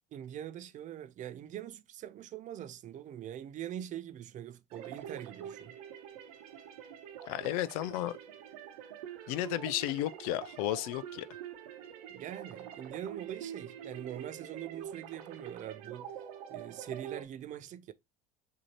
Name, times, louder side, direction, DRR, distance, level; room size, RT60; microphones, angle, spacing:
voice 1, 0.1-5.7 12.1-16.1 16.5-17.9, right 10 dB, 45° right, 0.5 m, -43 dB
sound 1, 4.7-17.2, right 9 dB, 85° right, 0.9 m, -46 dB
voice 2, 7.3-8.2 9.3-11.3, left 14 dB, 80° left, 0.4 m, -33 dB
6.1 x 2.8 x 2.9 m
supercardioid pair, 95°, 18 cm